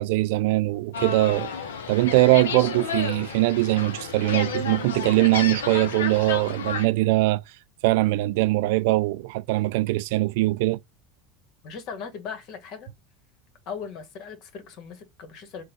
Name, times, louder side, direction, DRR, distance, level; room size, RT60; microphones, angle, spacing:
voice 1, 0.0-1.5 1.9-7.4 7.8-10.8, right 19 dB, 65° right, 0.3 m, -22 dB
sound 1, 0.9-6.9, left 6 dB, 75° left, 0.7 m, -32 dB
voice 2, 11.6-12.9 13.6-15.6, left 6 dB, 55° left, 1.5 m, -38 dB
3.7 x 2.3 x 4.3 m
hypercardioid pair, 75°, 0 cm